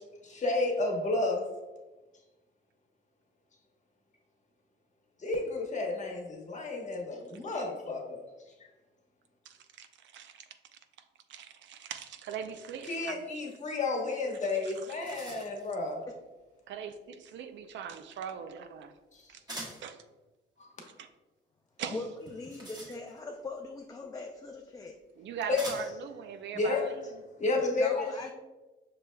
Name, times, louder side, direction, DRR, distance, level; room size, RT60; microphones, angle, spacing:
voice 1, 0.2-1.4 5.2-8.2 12.9-16.0 19.1-19.2 20.6-20.7 25.5-25.6 26.5-26.8 27.4-28.3, left 3 dB, 35° left, 0 dB, 1.1 m, -31 dB
voice 2, 9.5-10.5 11.3-13.3 14.6-15.2 16.7-18.9 19.3-19.4 19.8-20.0 20.9-21.1 21.8-22.0 25.2-27.2, right 7 dB, 65° right, 8 dB, 0.4 m, -41 dB
sound 1, 14.3-14.4 14.7-15.7 19.5-19.9 22.2-23.4 24.5-24.6 25.6-26.1, right 1 dB, 20° right, 1.3 m, -44 dB
voice 3, 21.9-25.0 27.8-28.3, left 3 dB, 20° left, 2 dB, 0.4 m, -40 dB
5.8 x 3.2 x 2.2 m, 1.2 s
cardioid pair, 90°, 20 cm